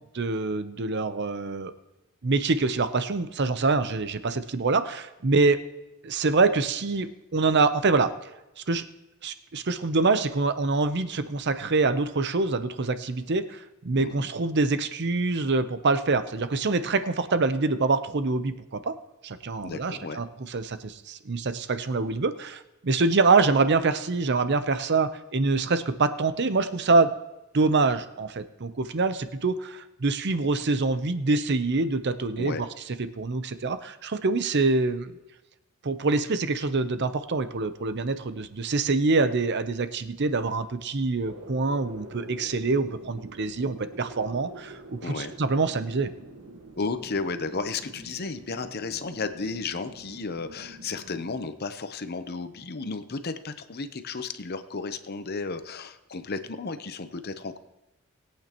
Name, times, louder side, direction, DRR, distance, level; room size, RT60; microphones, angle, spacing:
voice 1, 0.1-1.7 2.2-5.6 6.0-8.1 8.7-8.8 9.2-19.0 19.2-27.1 27.5-32.7 33.0-35.1 35.8-46.1, right 3 dB, 50° right, 11 dB, 0.7 m, -25 dB
voice 2, 14.0-14.3 19.6-20.2 32.4-32.6 45.0-45.3 46.8-57.6, left 4 dB, 45° left, 10 dB, 0.8 m, -33 dB
sound 1, 41.2-51.4, right 1 dB, 80° right, 1.4 m, -46 dB
21.0 x 8.7 x 3.0 m, 1.0 s
head